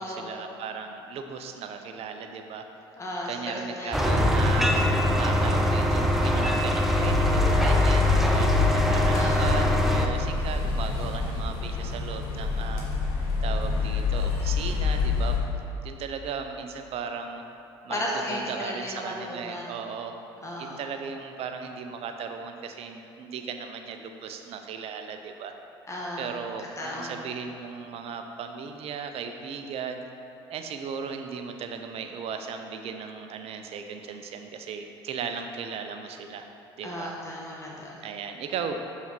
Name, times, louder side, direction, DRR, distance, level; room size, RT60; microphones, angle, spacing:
voice 1, 0.0-2.7 3.3-4.7 5.2-12.9 13.4-15.4 15.8-17.4 17.8-18.0 18.3-20.1 20.6-25.5 26.2-30.0 30.5-36.5 36.8-37.1 38.0-38.8, right 6 dB, 55° right, 6 dB, 0.7 m, -36 dB
voice 2, 3.0-4.2 9.1-9.5 17.9-19.7 20.4-20.8 25.9-26.4 26.8-27.3 36.8-38.0, left 1 dB, 25° left, -3 dB, 1.6 m, -34 dB
sound 1, 3.9-10.1, left 1 dB, ahead, 0.8 m, -23 dB
sound 2, 6.9-15.4, left 4 dB, 75° left, 1.4 m, -27 dB
7.0 x 5.6 x 4.5 m, 2.9 s
hypercardioid pair, 65°, 13 cm